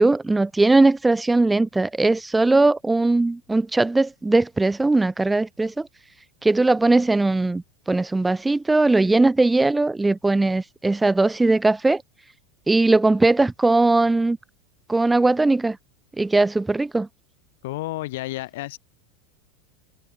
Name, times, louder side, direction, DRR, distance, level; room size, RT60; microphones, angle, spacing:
voice 1, 0.0-5.9 6.4-12.0 12.7-14.4 14.9-15.8 16.2-17.1, right 2 dB, 5° right, 0.6 m, -19 dB
voice 2, 17.6-18.8, left 18 dB, 70° left, 2.3 m, -31 dB
supercardioid pair, 160°, 0 cm